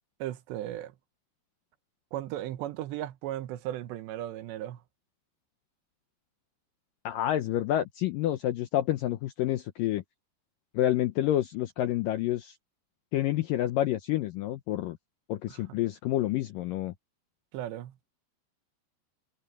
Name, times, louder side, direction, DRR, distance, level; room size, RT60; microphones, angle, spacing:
voice 1, 0.2-0.9 2.1-4.8 15.5-15.8 17.5-17.9, right 13 dB, 90° right, 3.3 m, -36 dB
voice 2, 7.1-10.0 10.7-12.5 13.1-15.0 15.3-16.9, left 13 dB, 80° left, 2.0 m, -28 dB
omnidirectional pair, 4.9 m